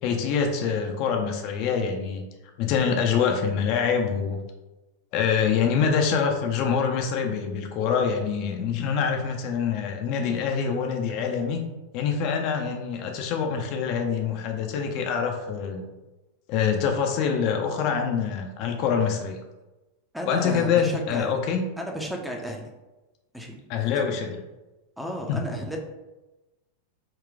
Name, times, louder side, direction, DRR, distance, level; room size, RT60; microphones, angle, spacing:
voice 1, 0.0-2.2 2.6-4.4 5.1-11.6 11.9-15.9 16.5-19.4 20.3-21.6 23.7-24.4 25.3-25.4, left 6 dB, 45° left, 3 dB, 0.5 m, -25 dB
voice 2, 20.1-21.3 21.8-22.7 23.3-23.6 25.0-25.8, equal, ahead, 1 dB, 0.6 m, -33 dB
3.9 x 2.3 x 3.5 m, 1.1 s
figure-of-eight pair, 90°, 0 cm